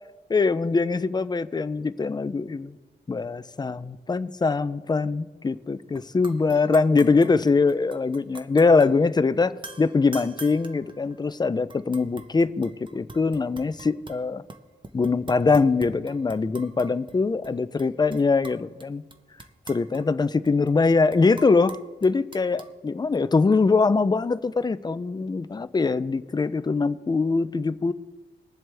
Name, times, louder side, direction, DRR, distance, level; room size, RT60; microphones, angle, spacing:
voice 1, 0.3-2.8 3.1-14.4 14.9-19.0 19.7-21.8 22.0-27.9, left 4 dB, 20° left, 14 dB, 0.4 m, -23 dB
sound 1, 6.0-6.1 6.2-8.9 9.6-11.3 11.7-14.2 14.5-17.2 17.4-17.5 17.8-18.8 19.1-22.7, right 3 dB, 25° right, 0.8 m, -44 dB
21.5 x 7.6 x 3.4 m, 1.2 s
wide cardioid pair, 110°, 20 cm